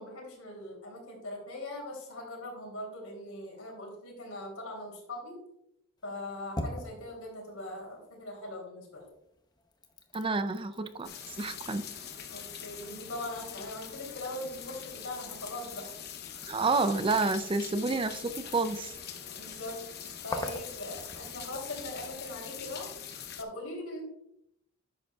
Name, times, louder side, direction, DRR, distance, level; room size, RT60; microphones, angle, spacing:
voice 1, 0.0-5.4 6.0-9.0 12.3-15.9 16.3-16.5 19.4-19.8 20.2-22.9 23.4-24.0, left 1 dB, 75° left, 0 dB, 3.2 m, -41 dB
sound 1, 6.0-8.6 9.0-22.2, left 1 dB, 20° left, 0.7 m, -46 dB
voice 2, 10.1-11.9 16.5-18.9, right 3 dB, 25° right, 11 dB, 0.4 m, -29 dB
sound 2, 11.0-23.4, left 8 dB, 45° left, 0.8 m, -43 dB
10.5 x 7.8 x 2.4 m, 0.81 s
head